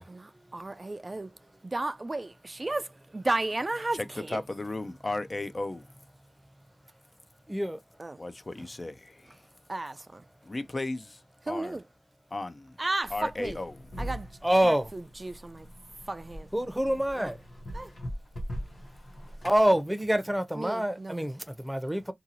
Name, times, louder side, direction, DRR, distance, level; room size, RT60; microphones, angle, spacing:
voice 1, 0.1-1.3 1.6-2.8 3.1-4.4 8.0-8.2 9.7-10.2 11.5-11.8 12.8-13.6 14.0-14.3 14.6-15.7 16.1-16.5 17.2-17.3 17.7-17.9 20.5-21.3, right 2 dB, 40° right, 0.3 m, -33 dB
voice 2, 3.9-5.9 8.2-9.4 10.4-11.2 11.5-11.8 12.3-12.7 13.1-13.8, left 2 dB, 45° left, 0.4 m, -35 dB
voice 3, 7.5-7.8 14.4-14.9 16.5-17.4 19.4-22.1, right 1 dB, 10° right, 0.6 m, -26 dB
sound 1, 13.0-19.6, equal, 90° left, 0.8 m, -41 dB
2.8 x 2.7 x 2.6 m
cardioid pair, 45°, 0 cm